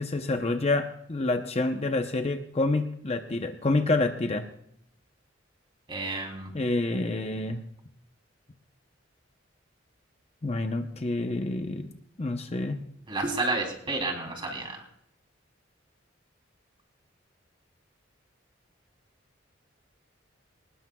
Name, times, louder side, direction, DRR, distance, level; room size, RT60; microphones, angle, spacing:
voice 1, 0.0-4.4 6.5-7.6 10.4-11.9 12.2-12.8, left 2 dB, 35° left, 6 dB, 0.8 m, -28 dB
voice 2, 5.9-6.5 13.1-14.8, right 2 dB, 25° right, 1 dB, 3.2 m, -30 dB
23.0 x 19.5 x 2.3 m, 0.71 s
head